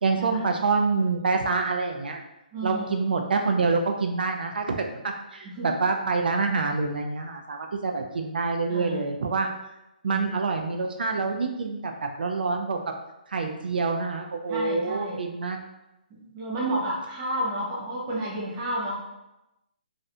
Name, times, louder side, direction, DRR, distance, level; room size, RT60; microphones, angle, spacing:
voice 1, 0.0-2.2 2.6-9.5 10.0-12.8 13.3-15.6, right 4 dB, 80° right, 3 dB, 0.4 m, -26 dB
voice 2, 2.5-2.9 5.6-5.7 8.7-9.0 10.0-10.2 14.5-15.3 16.1-18.9, right 1 dB, 15° right, -6 dB, 0.4 m, -31 dB
2.5 x 2.1 x 2.6 m, 0.94 s
hypercardioid pair, 175°, 5 cm